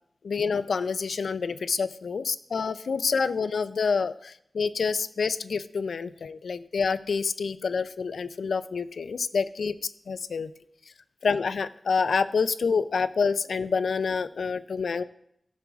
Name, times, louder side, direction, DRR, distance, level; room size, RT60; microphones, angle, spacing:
voice 1, 0.2-10.5 11.2-15.0, left 5 dB, 85° left, 13 dB, 0.4 m, -27 dB
15.0 x 6.9 x 2.4 m, 0.72 s
wide cardioid pair, 70°, 0 cm